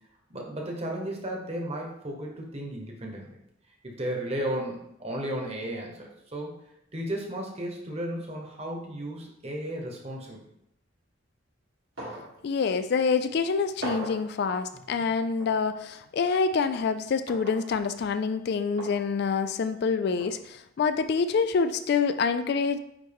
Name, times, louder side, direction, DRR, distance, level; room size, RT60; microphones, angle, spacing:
voice 1, 0.3-3.3 3.8-6.5 6.9-10.4 14.9-15.1, right 1 dB, 30° right, 0 dB, 1.2 m, -34 dB
sound 1, 12.0-12.3 12.7-12.8 13.8-14.2 15.4-15.5 17.3-17.6 18.8-19.0 20.2-20.3, right 1 dB, 85° right, 2.5 m, -37 dB
voice 2, 12.4-22.8, left 5 dB, 55° left, 10 dB, 0.3 m, -26 dB
8.9 x 3.1 x 3.5 m, 0.78 s
head